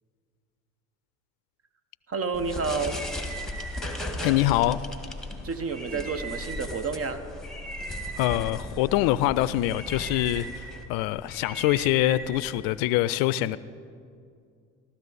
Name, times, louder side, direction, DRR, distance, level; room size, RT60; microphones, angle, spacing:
voice 1, 2.1-3.0 5.4-7.3, right 4 dB, 35° right, 10 dB, 1.2 m, -30 dB
sound 1, 2.3-13.0, equal, ahead, 1.7 m, -36 dB
voice 2, 4.2-4.9 8.2-13.6, left 15 dB, 65° left, 18 dB, 0.5 m, -24 dB
15.5 x 13.0 x 4.1 m, 2.3 s
hypercardioid pair, 75°, 38 cm